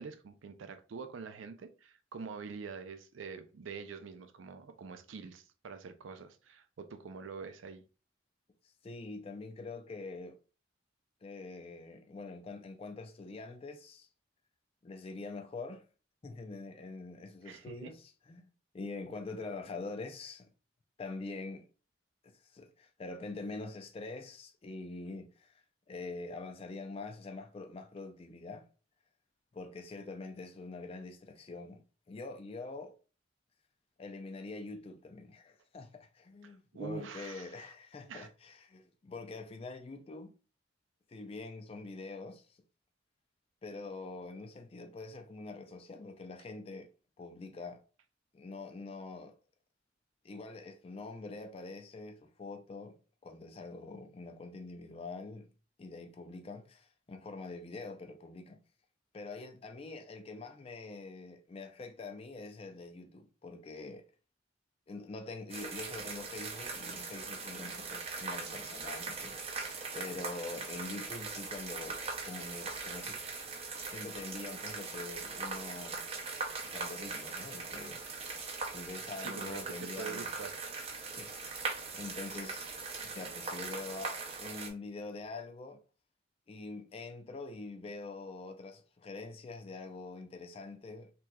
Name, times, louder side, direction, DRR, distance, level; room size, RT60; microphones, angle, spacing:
voice 1, 0.0-7.8 17.4-17.9 36.4-37.7 38.1-38.3 79.2-80.5, right 5 dB, 85° right, 0.4 m, -45 dB
voice 2, 8.8-10.4 11.2-14.1 14.8-15.8 16.2-18.5 18.7-20.5 21.0-21.6 22.2-28.6 29.5-31.8 32.1-32.9 34.0-40.3 41.1-42.6 43.6-46.9 47.2-47.8 48.3-49.3 50.2-53.0 53.2-55.5 55.8-58.6 59.1-64.0 64.9-69.6 69.9-73.2 73.9-76.1 76.6-78.3 78.7-80.4 81.1-81.7 81.9-82.7 83.0-85.8 86.5-91.1, left 3 dB, 30° left, 0.3 m, -45 dB
sound 1, 65.5-84.7, right 4 dB, 30° right, 0.6 m, -40 dB
3.4 x 2.9 x 2.2 m
head